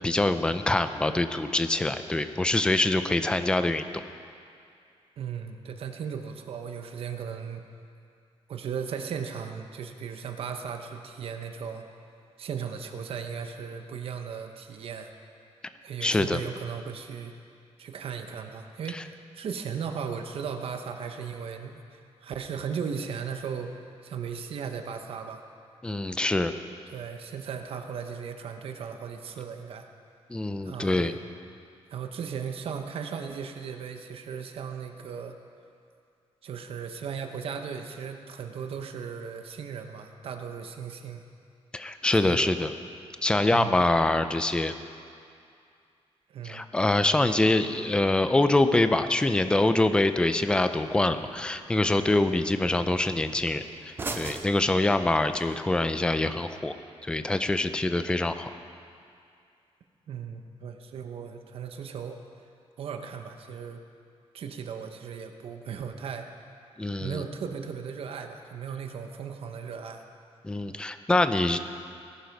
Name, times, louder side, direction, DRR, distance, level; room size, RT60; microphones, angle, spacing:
voice 1, 0.0-3.9 16.0-16.4 18.9-19.0 25.8-26.5 30.3-31.1 41.7-42.7 43.2-44.7 46.4-56.7 57.0-58.5 66.8-67.2 70.4-71.6, left 2 dB, 10° left, 9 dB, 0.5 m, -25 dB
voice 2, 5.2-7.6 8.5-11.9 12.4-15.1 15.8-17.3 17.8-23.8 24.0-25.4 26.9-29.9 30.6-31.1 31.9-35.4 36.4-41.2 42.1-42.6 43.5-43.8 46.3-46.7 60.1-62.2 62.8-63.8 64.3-66.3 67.0-70.0, right 6 dB, 60° right, 6 dB, 0.9 m, -36 dB
sound 1, 47.5-55.5, right 3 dB, 20° right, 0.7 m, -44 dB
18.5 x 10.5 x 5.3 m, 2.4 s
wide cardioid pair, 180°, 11 cm